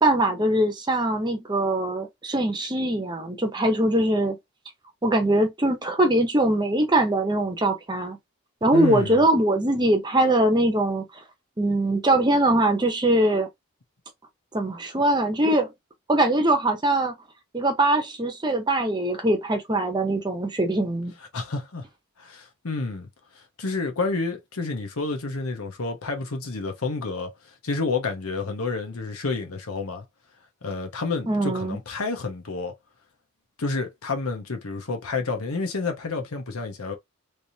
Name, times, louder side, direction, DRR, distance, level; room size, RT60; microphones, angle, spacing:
voice 1, 0.0-4.4 5.0-8.2 8.6-11.0 11.6-13.5 14.5-15.7 16.1-17.1 17.5-21.1 31.3-31.8, right 1 dB, 20° right, 0.7 m, -22 dB
voice 2, 8.7-9.2 21.3-21.8 22.2-23.1 23.3-27.3 27.6-30.0 30.6-32.7 33.6-37.0, left 3 dB, 80° left, 0.9 m, -29 dB
3.4 x 2.8 x 2.7 m
head